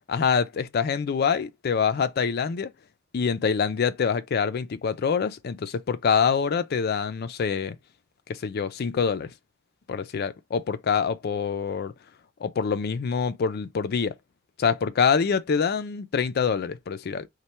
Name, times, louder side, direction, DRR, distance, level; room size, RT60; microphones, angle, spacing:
voice 1, 0.1-2.7 3.1-7.8 8.3-9.3 9.9-11.9 12.4-14.2 14.6-17.3, left 6 dB, 55° left, 0.4 m, -25 dB
3.2 x 2.1 x 4.2 m
head